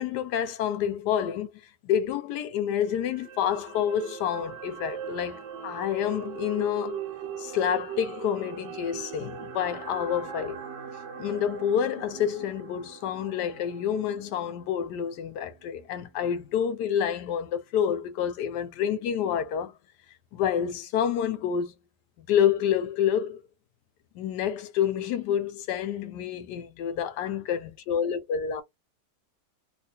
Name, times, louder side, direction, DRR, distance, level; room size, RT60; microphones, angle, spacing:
voice 1, 0.0-1.5 1.8-7.0 7.4-10.6 11.2-19.7 20.3-21.7 22.2-23.4 24.1-28.6, left 9 dB, 85° left, 1.2 m, -28 dB
sound 1, 2.8-15.1 15.5-15.6, right 7 dB, 90° right, 1.5 m, -40 dB
3.3 x 2.5 x 2.9 m
omnidirectional pair, 1.8 m